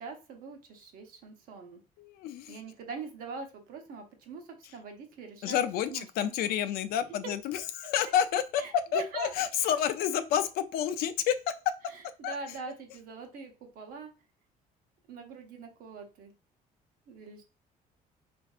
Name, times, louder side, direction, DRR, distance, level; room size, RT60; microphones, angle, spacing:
voice 1, 0.0-1.8 2.5-6.6 8.6-9.3 11.9-14.1 15.1-16.3 17.1-17.4, right 4 dB, 65° right, 4 dB, 0.9 m, -43 dB
voice 2, 2.0-2.6 5.4-8.6 8.9-11.4 12.2-12.3, left 9 dB, 75° left, 11 dB, 0.4 m, -29 dB
4.3 x 2.6 x 2.3 m, 0.32 s
cardioid pair, 150°, 16 cm